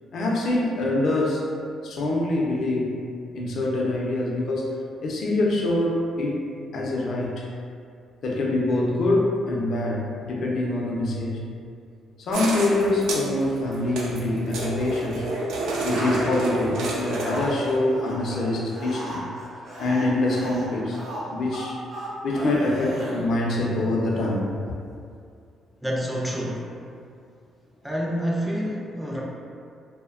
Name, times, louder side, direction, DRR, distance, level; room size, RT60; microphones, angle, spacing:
voice 1, 0.1-1.4 1.8-3.0 3.3-4.7 5.0-6.4 6.7-7.5 8.2-11.5 12.2-15.3 15.8-19.2 19.8-21.0 21.3-21.8 22.2-24.5, left 2 dB, 65° left, -2 dB, 0.4 m, -25 dB
sound 1, 12.3-17.8, right 2 dB, 85° right, 0.3 m, -30 dB
sound 2, 15.3-15.4 15.7-16.6 17.0-23.2, right 1 dB, 60° right, 0.7 m, -35 dB
voice 2, 25.8-26.7 27.8-29.2, equal, ahead, -4 dB, 0.3 m, -27 dB
2.6 x 2.1 x 2.4 m, 2.3 s
cardioid pair, 90°, 0 cm